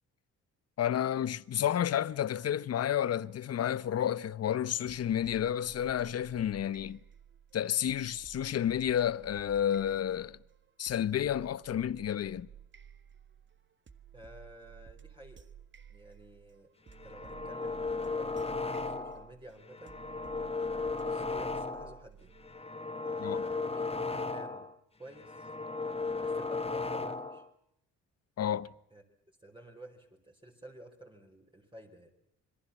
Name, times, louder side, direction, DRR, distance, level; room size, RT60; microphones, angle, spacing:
voice 1, 0.8-7.0 7.5-10.4 10.8-12.5 23.2-23.4 28.4-28.7, left 10 dB, 55° left, 1.0 m, -31 dB
sound 1, 4.9-22.6, right 8 dB, 40° right, 1.7 m, -54 dB
voice 2, 14.1-15.5 15.9-16.7 17.0-20.0 21.0-22.3 23.0-24.7 25.0-25.5 26.1-27.5 28.9-29.0 29.4-32.1, right 1 dB, 15° right, 4.9 m, -52 dB
sound 2, 16.9-19.3 19.7-22.0 22.4-24.7 25.1-27.5, left 3 dB, 20° left, 1.5 m, -35 dB
27.0 x 22.5 x 7.2 m
cardioid pair, 90°, 30 cm